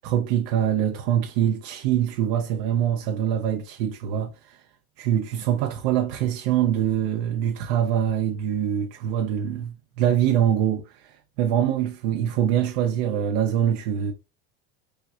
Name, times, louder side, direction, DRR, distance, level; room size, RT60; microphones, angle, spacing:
voice 1, 0.0-4.6 5.0-14.1, right 10 dB, 75° right, 0.6 m, -24 dB
6.2 x 2.2 x 2.3 m
supercardioid pair, 115°, 30 cm